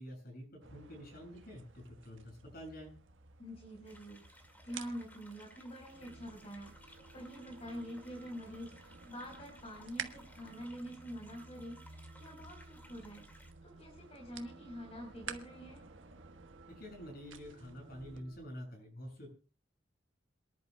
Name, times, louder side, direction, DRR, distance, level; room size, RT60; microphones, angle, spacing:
voice 1, 0.0-2.9 16.7-19.3, equal, 55° left, 2 dB, 6.9 m, -48 dB
sound 1, 0.6-18.2, right 6 dB, 80° right, 1.3 m, -53 dB
voice 2, 3.4-15.8, equal, 35° left, 0 dB, 4.4 m, -46 dB
sound 2, 3.8-13.5, left 1 dB, 10° left, 1.9 m, -61 dB
sound 3, 5.9-18.5, right 2 dB, 65° right, 0.9 m, -58 dB
27.5 x 11.0 x 2.2 m, 0.33 s
head